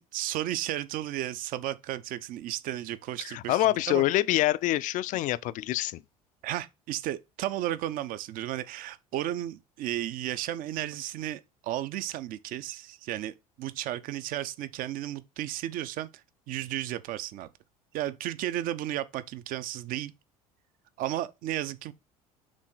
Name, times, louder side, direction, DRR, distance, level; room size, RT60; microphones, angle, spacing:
voice 1, 0.0-4.0 6.4-16.1 16.5-17.5 17.9-20.1 21.0-21.9, right 13 dB, 50° right, 0.6 m, -34 dB
voice 2, 3.2-6.0, left 15 dB, 45° left, 0.4 m, -26 dB
6.2 x 3.9 x 4.3 m
figure-of-eight pair, 65°, 19 cm